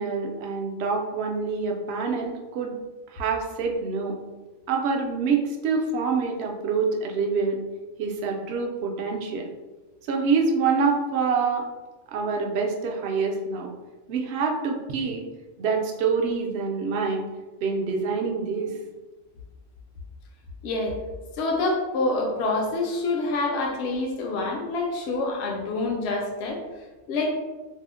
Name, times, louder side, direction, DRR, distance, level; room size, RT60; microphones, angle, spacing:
voice 1, 0.0-2.7 3.1-4.2 4.7-7.6 8.0-9.5 10.1-11.7 12.1-13.7 14.1-15.2 15.6-17.2 17.6-18.8, right 5 dB, 65° right, 1 dB, 0.7 m, -26 dB
voice 2, 20.6-21.0 21.4-26.6 27.1-27.3, left 2 dB, 65° left, 0 dB, 0.8 m, -26 dB
2.7 x 2.1 x 3.6 m, 1.2 s
omnidirectional pair, 1.3 m